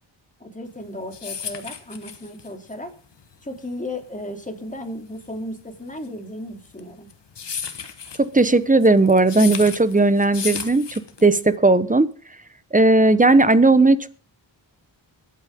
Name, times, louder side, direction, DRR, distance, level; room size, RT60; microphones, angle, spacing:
voice 1, 0.4-2.9 3.4-7.1, left 1 dB, 15° left, 3 dB, 3.1 m, -35 dB
sound 1, 0.8-11.5, left 6 dB, 60° left, 1.5 m, -35 dB
voice 2, 8.2-12.1 12.7-14.1, right 2 dB, 15° right, 14 dB, 1.1 m, -16 dB
24.0 x 8.6 x 3.7 m, 0.38 s
cardioid pair, 55°, 46 cm